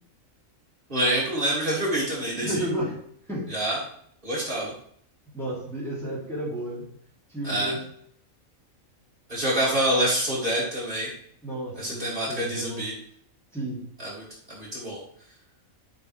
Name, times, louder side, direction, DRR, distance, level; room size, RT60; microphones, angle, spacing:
voice 1, 0.9-2.6 3.5-3.8 4.2-4.7 7.4-7.7 9.3-11.1 11.8-12.9 14.0-15.0, right 1 dB, 40° right, -7 dB, 2.8 m, -26 dB
voice 2, 2.3-3.0 3.3-3.5 5.3-6.8 7.3-7.8 11.4-12.9 13.5-13.8, right 1 dB, ahead, -8 dB, 3.3 m, -32 dB
11.5 x 5.9 x 3.4 m, 0.65 s
omnidirectional pair, 1.4 m